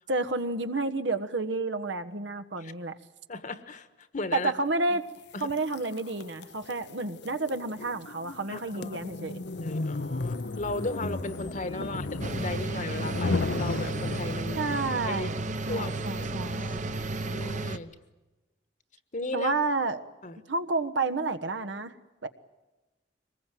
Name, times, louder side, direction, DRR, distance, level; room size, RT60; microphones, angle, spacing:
voice 1, 0.1-2.9 4.3-5.0 5.4-9.4 14.6-15.4 15.7-16.6 19.3-20.1 20.5-21.9 22.2-22.3, right 3 dB, 80° right, 8 dB, 1.3 m, -30 dB
voice 2, 3.3-4.5 4.9-5.0 5.3-5.5 8.5-9.0 9.6-12.1 12.4-14.8 15.0-15.4 15.7-15.9 17.3-17.9 19.1-19.5 20.2-20.4, left 2 dB, 45° left, 12 dB, 1.4 m, -36 dB
sound 1, 5.4-14.8, left 3 dB, 65° left, 0.8 m, -34 dB
sound 2, 10.2-17.8, left 2 dB, 25° left, 0.8 m, -45 dB
sound 3, 12.2-17.8, right 2 dB, 45° right, 1.0 m, -33 dB
24.0 x 20.5 x 9.2 m, 1.1 s
head